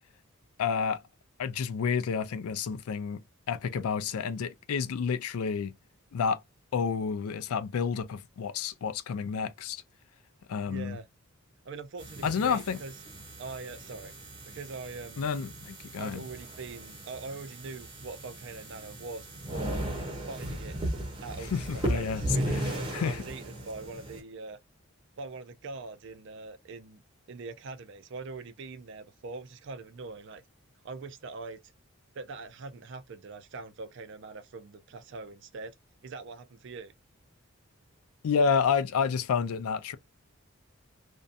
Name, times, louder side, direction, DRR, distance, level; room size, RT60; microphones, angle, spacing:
voice 1, 0.6-1.0 1.4-3.2 3.5-5.7 6.1-6.4 6.7-9.8 10.5-11.0 12.2-12.8 15.2-16.2 21.5-23.2 38.2-40.0, left 6 dB, 80° left, 0.4 m, -30 dB
voice 2, 10.7-11.1 11.6-12.9 13.4-14.1 14.5-15.3 16.0-19.8 20.3-20.8 21.2-24.6 25.2-27.0 27.3-30.4 30.8-31.6 32.1-35.8 36.0-36.9, right 3 dB, 55° right, 0.4 m, -42 dB
sound 1, 12.0-24.2, right 1 dB, 20° right, 0.7 m, -36 dB
2.5 x 2.2 x 2.4 m
head